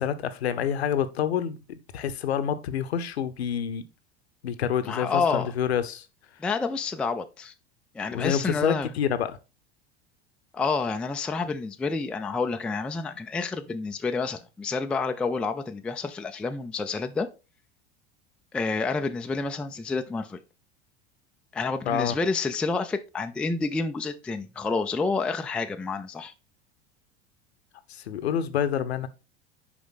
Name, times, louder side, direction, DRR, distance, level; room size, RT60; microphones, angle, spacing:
voice 1, 0.0-3.8 4.4-6.1 8.1-9.4 21.9-22.1 27.9-29.1, left 8 dB, 70° left, 0.8 m, -28 dB
voice 2, 4.8-5.5 6.4-7.5 7.9-8.9 10.5-17.3 18.5-20.4 21.5-26.3, left 4 dB, 5° left, 0.3 m, -29 dB
6.1 x 5.1 x 3.9 m
figure-of-eight pair, 75°, 33 cm